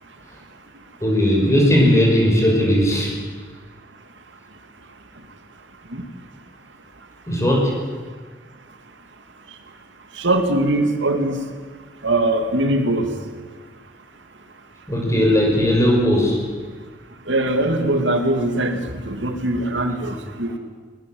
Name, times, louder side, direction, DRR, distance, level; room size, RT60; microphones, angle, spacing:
voice 1, 1.0-3.1 7.3-7.8 14.9-16.4, equal, 15° left, 0 dB, 6.0 m, -17 dB
voice 2, 10.2-11.4 12.0-13.1 17.3-20.5, right 1 dB, 85° right, 6 dB, 2.6 m, -21 dB
21.5 x 21.0 x 8.0 m, 1.4 s
head